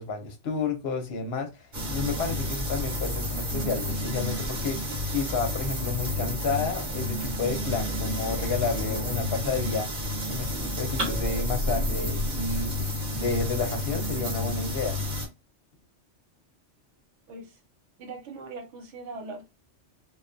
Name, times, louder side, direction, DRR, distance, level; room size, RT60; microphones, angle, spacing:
voice 1, 0.0-1.5 1.9-9.9 10.3-12.9 13.2-15.0, left 4 dB, 65° left, 0.8 m, -31 dB
sound 1, 1.7-15.3, left 1 dB, 45° right, 1.0 m, -30 dB
voice 2, 17.3-17.6 18.0-19.4, right 3 dB, 75° right, 1.0 m, -40 dB
2.2 x 2.2 x 2.5 m
omnidirectional pair, 1.2 m